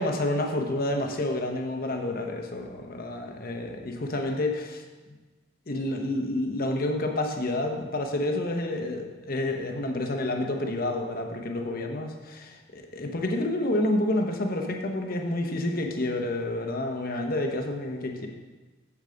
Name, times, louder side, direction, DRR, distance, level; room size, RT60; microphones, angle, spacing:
voice 1, 0.0-4.8 5.7-18.3, left 1 dB, 45° left, 3 dB, 0.9 m, -29 dB
8.4 x 7.2 x 3.9 m, 1.2 s
head